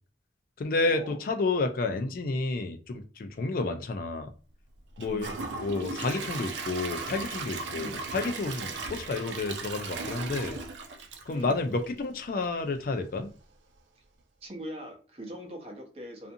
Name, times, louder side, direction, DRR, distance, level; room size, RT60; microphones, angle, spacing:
voice 1, 0.6-4.3 5.0-10.6 11.3-13.3, left 3 dB, 50° left, 0.4 m, -30 dB
Gurgling / Toilet flush / Trickle dribble, 5.0-12.0 12.4-12.5 13.0-13.1, right 3 dB, 85° right, 0.5 m, -37 dB
voice 2, 14.4-16.3, equal, 35° right, 0.7 m, -41 dB
2.5 x 2.5 x 2.6 m
head